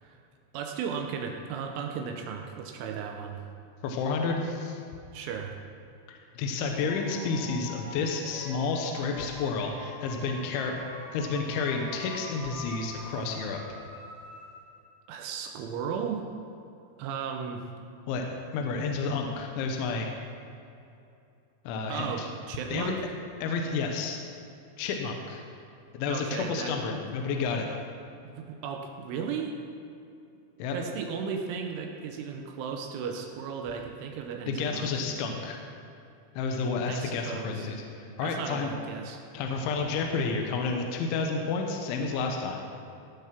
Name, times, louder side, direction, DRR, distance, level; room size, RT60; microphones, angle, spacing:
voice 1, 0.5-3.4 5.1-5.6 15.1-16.2 17.0-17.6 21.9-23.0 26.1-26.8 28.3-29.6 30.7-35.0 36.9-37.7 38.2-39.2, right 6 dB, 80° right, 2 dB, 3.1 m, -35 dB
voice 2, 3.8-4.8 6.1-10.9 11.1-13.6 18.1-18.2 18.5-20.1 21.7-22.3 22.7-22.9 23.4-24.2 24.8-25.4 25.9-27.7 30.6-30.8 34.5-35.6 36.4-38.7 39.3-42.7, left 4 dB, 75° left, 2 dB, 3.1 m, -30 dB
sound 1, 6.8-14.9, equal, 20° right, 3.4 m, -44 dB
18.0 x 7.2 x 5.9 m, 2.7 s
omnidirectional pair, 5.9 m